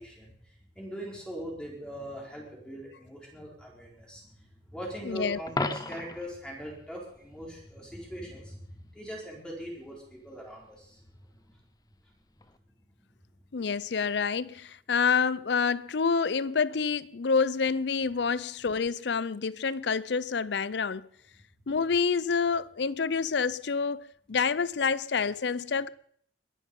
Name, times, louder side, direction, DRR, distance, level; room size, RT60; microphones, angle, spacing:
voice 1, 0.0-11.6 12.0-12.1, right 1 dB, 5° left, 4.2 m, -41 dB
voice 2, 5.0-5.4 13.5-21.1 21.7-25.9, left 5 dB, 70° left, 0.5 m, -28 dB
Coin (dropping), 5.5-6.3 12.4-12.6, left 3 dB, 20° left, 0.7 m, -33 dB
21.5 x 10.5 x 5.4 m
head